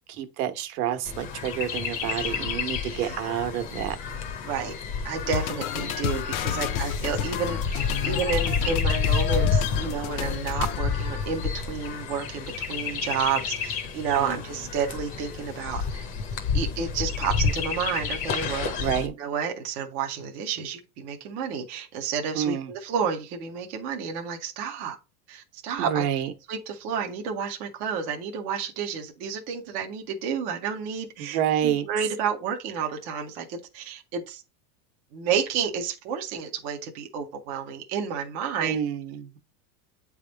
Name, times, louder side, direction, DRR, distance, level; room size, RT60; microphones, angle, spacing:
voice 1, 0.1-4.0 14.2-14.4 18.8-19.1 22.3-22.7 25.8-26.3 31.2-31.9 38.6-39.4, right 10 dB, 75° right, 1.2 m, -28 dB
Chirp tweet, 1.0-19.1, left 5 dB, 30° left, 0.7 m, -30 dB
voice 2, 4.4-4.7 5.0-16.0 16.5-18.9 19.2-25.0 25.3-26.1 26.5-34.4 35.1-38.8, right 6 dB, 20° right, 0.4 m, -30 dB
sound 1, 5.3-10.8, left 11 dB, 65° left, 0.7 m, -31 dB
8.3 x 3.5 x 3.8 m
supercardioid pair, 170°, 45 cm